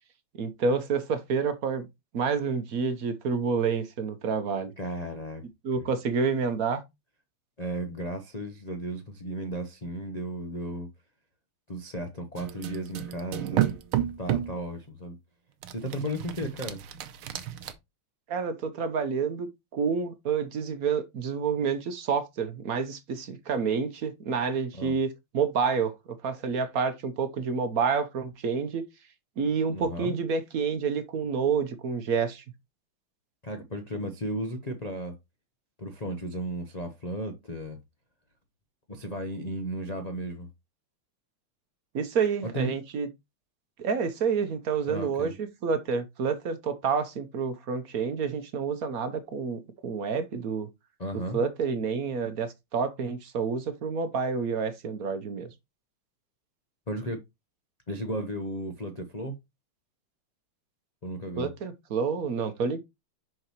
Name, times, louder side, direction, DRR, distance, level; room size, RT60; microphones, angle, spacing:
voice 1, 0.4-1.9 2.1-4.7 5.6-6.8 18.3-25.9 26.2-28.8 29.4-32.4 41.9-43.1 43.8-50.7 51.3-55.5 61.4-62.8, right 5 dB, 55° right, 1.0 m, -28 dB
voice 2, 4.8-5.4 5.8-5.9 7.6-10.9 11.7-13.8 14.2-15.2 15.7-16.8 24.7-24.9 29.7-30.1 33.4-35.1 35.8-37.8 38.9-40.5 42.4-42.7 44.9-45.3 51.0-51.4 56.9-57.2 57.9-59.3 61.0-61.5, equal, 65° left, 0.4 m, -34 dB
sound 1, 12.4-14.6 15.6-17.7, right 11 dB, 75° right, 1.6 m, -31 dB
6.2 x 5.9 x 3.0 m
omnidirectional pair, 2.4 m